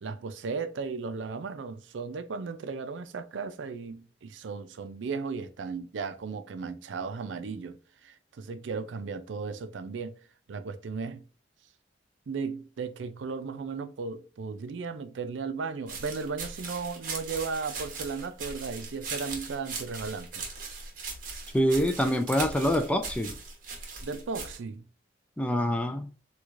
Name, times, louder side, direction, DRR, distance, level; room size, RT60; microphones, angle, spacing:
voice 1, 0.0-10.1 10.5-11.2 12.3-20.4 24.0-24.9, right 4 dB, 80° right, 0.4 m, -36 dB
sound 1, 15.9-24.6, right 4 dB, 45° right, 1.1 m, -39 dB
voice 2, 21.5-23.4 25.4-26.1, equal, 5° left, 0.3 m, -25 dB
4.6 x 2.3 x 2.4 m
head